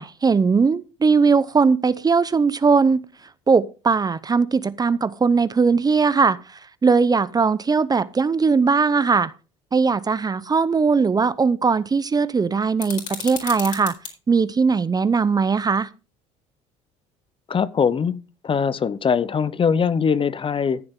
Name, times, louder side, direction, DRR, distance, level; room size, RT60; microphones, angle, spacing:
voice 1, 0.0-3.0 3.5-6.4 6.8-9.3 9.7-13.9 14.3-15.9, right 5 dB, 25° right, 0.7 m, -19 dB
sound 1, 12.8-14.1, left 6 dB, 50° left, 4.3 m, -33 dB
voice 2, 17.5-18.2 18.4-20.8, left 6 dB, 35° left, 0.8 m, -21 dB
14.5 x 7.7 x 3.7 m
hypercardioid pair, 70°, 16 cm